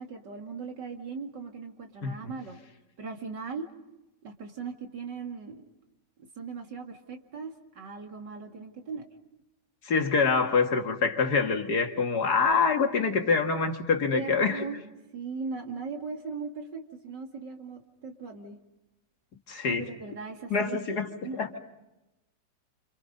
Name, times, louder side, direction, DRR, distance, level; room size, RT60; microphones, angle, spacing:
voice 1, 0.0-2.6 3.0-3.7 4.2-5.6 6.4-9.0 14.1-14.8 15.1-18.6 19.7-20.9 21.2-21.5, right 4 dB, 80° right, 3.0 m, -38 dB
voice 2, 9.9-14.6 19.5-19.9 20.5-21.1 21.4-21.6, left 5 dB, 65° left, 2.3 m, -25 dB
30.0 x 27.0 x 5.4 m
omnidirectional pair, 1.9 m